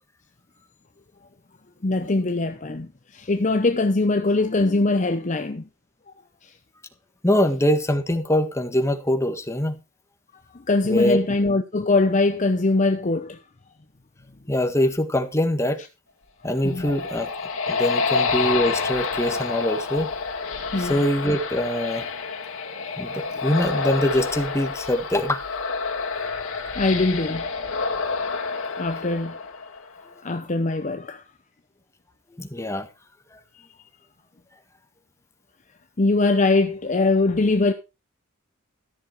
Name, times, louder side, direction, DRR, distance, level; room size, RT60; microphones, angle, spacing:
voice 1, 1.8-5.7 6.4-6.5 10.5-13.4 16.6-16.9 20.7-20.9 26.8-27.5 28.8-29.4 30.2-31.2 36.0-37.7, left 2 dB, 35° left, 0.7 m, -22 dB
voice 2, 7.2-9.8 10.8-11.2 14.5-15.8 16.4-17.3 17.7-20.1 20.8-22.1 23.0-25.4 32.4-32.9 33.3-33.4, left 1 dB, 15° left, 1.6 m, -23 dB
sound 1, 16.4-30.0, left 4 dB, 75° left, 2.5 m, -28 dB
13.5 x 7.0 x 4.7 m
head